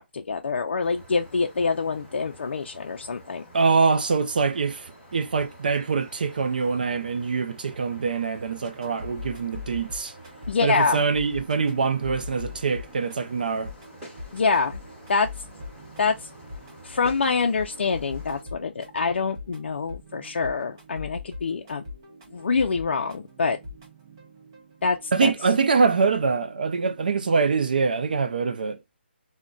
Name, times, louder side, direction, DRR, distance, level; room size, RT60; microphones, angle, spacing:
voice 1, 0.0-3.4 10.5-11.0 14.3-14.8 15.1-15.3 16.0-16.1 16.8-21.8 22.3-23.6 24.8-25.3, left 4 dB, 70° left, 0.4 m, -25 dB
sound 1, 0.8-18.4, equal, 5° right, 1.2 m, -49 dB
voice 2, 3.5-10.1 10.6-13.7 25.1-28.8, right 4 dB, 50° right, 0.3 m, -24 dB
sound 2, 8.6-28.3, left 3 dB, 25° right, 0.8 m, -43 dB
3.7 x 2.1 x 2.2 m
hypercardioid pair, 175°, 6 cm